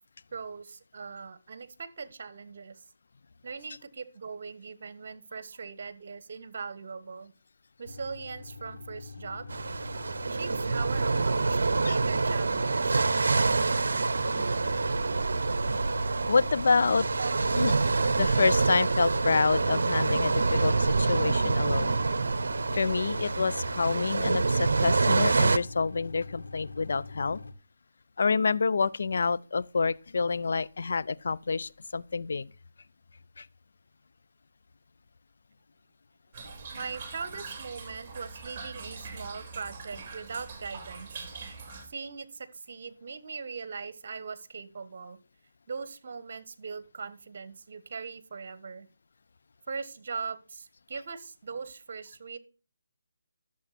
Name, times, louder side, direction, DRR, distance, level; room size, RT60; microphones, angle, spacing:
voice 1, 0.3-2.8 3.4-7.3 7.8-9.5 10.3-13.0 17.2-17.4 36.7-41.3 41.8-45.2 45.7-48.9 49.7-52.4, right 5 dB, 55° right, 1.3 m, -40 dB
sound 1, 7.8-27.5, left 3 dB, 80° left, 1.3 m, -43 dB
sound 2, 9.5-25.6, right 3 dB, 70° right, 0.7 m, -26 dB
voice 2, 16.3-17.1 17.6-17.7 18.2-21.9 22.7-27.4 28.2-32.5 33.4-33.5, left 4 dB, 65° left, 0.5 m, -28 dB
Toilet flush / Trickle dribble, 36.3-41.9, right 4 dB, 30° right, 3.2 m, -43 dB
11.5 x 7.2 x 4.2 m
figure-of-eight pair, 155°, 0 cm